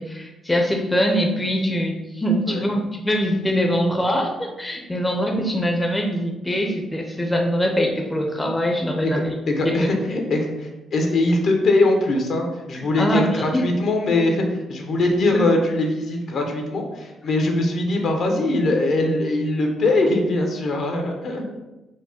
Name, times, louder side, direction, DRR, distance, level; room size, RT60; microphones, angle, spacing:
voice 1, 0.0-9.3 9.6-9.9 12.7-13.6 15.3-15.4, equal, 15° left, 2 dB, 0.5 m, -23 dB
voice 2, 9.0-21.6, left 2 dB, 60° left, 2 dB, 0.8 m, -22 dB
4.6 x 2.1 x 4.2 m, 1.0 s
cardioid pair, 90°, 0 cm